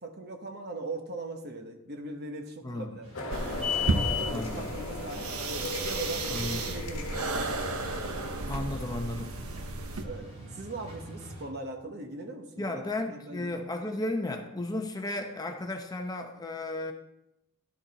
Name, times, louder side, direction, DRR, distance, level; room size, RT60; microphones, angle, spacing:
voice 1, 0.0-3.1 3.6-7.7 10.0-13.6, right 2 dB, 50° right, 4 dB, 1.1 m, -40 dB
voice 2, 2.6-3.0 4.3-4.7 6.3-6.7 8.5-9.3 12.6-16.9, left 2 dB, 15° left, 4 dB, 0.7 m, -34 dB
sound 1, 3.0-11.5, left 6 dB, 30° right, 3.0 m, -40 dB
sound 2, 3.1-9.3, left 3 dB, 65° left, 1.3 m, -38 dB
sound 3, 3.3-10.0, right 3 dB, 80° right, 0.8 m, -33 dB
11.5 x 6.5 x 4.1 m, 0.86 s
head